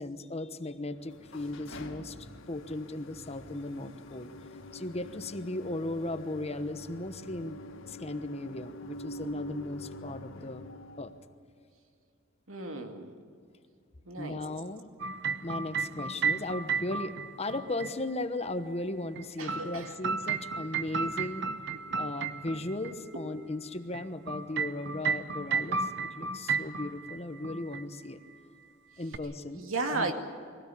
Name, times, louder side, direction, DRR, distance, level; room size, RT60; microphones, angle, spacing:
voice 1, 0.0-4.3 4.7-7.6 7.9-10.6 11.0-11.1 14.2-14.9 15.4-17.1 17.4-21.4 21.9-28.2 29.0-29.6 29.9-30.1, left 2 dB, 30° left, 10 dB, 1.1 m, -36 dB
sound 1, 1.0-11.3, left 1 dB, 75° left, 1.8 m, -46 dB
voice 2, 12.5-13.2 14.0-14.4 19.4-19.9 23.1-23.2 29.6-30.1, right 3 dB, 90° right, 5 dB, 2.4 m, -34 dB
sound 2, 15.0-17.9 19.2-22.9 23.9-27.2 27.4-27.8 29.1-29.2, right 5 dB, 60° right, 0.8 m, -33 dB
22.5 x 17.0 x 8.6 m, 2.3 s
head